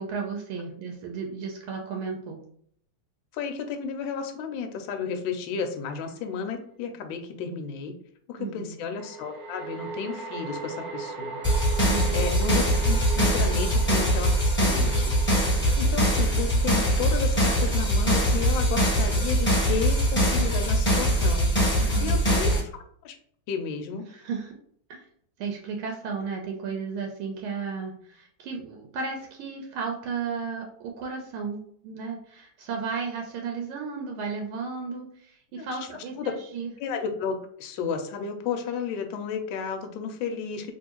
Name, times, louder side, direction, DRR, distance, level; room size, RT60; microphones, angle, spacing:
voice 1, 0.0-2.4 8.4-8.8 11.9-12.4 21.8-22.3 24.1-24.5 24.9-25.0 25.4-36.7, right 5 dB, 80° right, 2 dB, 1.5 m, -34 dB
voice 2, 3.3-7.9 8.3-11.4 12.1-15.1 15.8-21.5 22.0-22.6 23.0-23.1 23.5-24.0 35.5-35.8 36.2-36.3 36.8-40.7, left 6 dB, 75° left, 5 dB, 1.3 m, -32 dB
sound 1, 5.9-6.0 8.9-20.3, right 4 dB, 60° right, 1.0 m, -39 dB
sound 2, 11.4-22.6, equal, 5° left, 0.9 m, -22 dB
3.5 x 2.7 x 2.9 m, 0.64 s
omnidirectional pair, 2.4 m